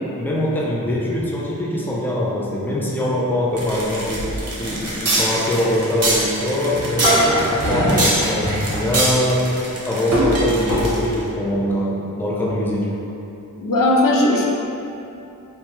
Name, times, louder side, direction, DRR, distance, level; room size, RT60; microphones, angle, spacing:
voice 1, 0.2-7.2 7.5-9.5 9.9-13.0, left 1 dB, 5° left, -5 dB, 0.4 m, -23 dB
sound 1, 3.6-11.2, right 1 dB, 45° right, 0.7 m, -23 dB
sound 2, 6.8-9.4, equal, 40° left, 1.0 m, -21 dB
voice 2, 13.6-14.4, left 1 dB, 70° left, -2 dB, 0.5 m, -17 dB
2.9 x 2.3 x 2.9 m, 2.8 s
wide cardioid pair, 60°, 34 cm